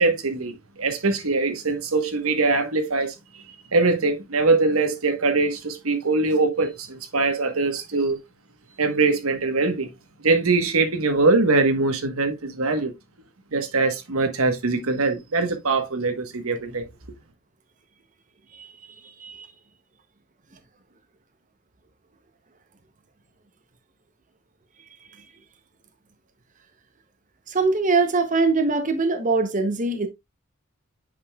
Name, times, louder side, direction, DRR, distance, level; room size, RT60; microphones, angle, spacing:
voice 1, 0.0-3.4 3.7-8.2 8.8-9.9 10.2-12.9 13.5-16.8, right 3 dB, 85° right, 1.2 m, -22 dB
voice 2, 19.0-19.5 27.5-30.1, right 3 dB, 35° right, 0.7 m, -22 dB
8.6 x 5.3 x 2.3 m
head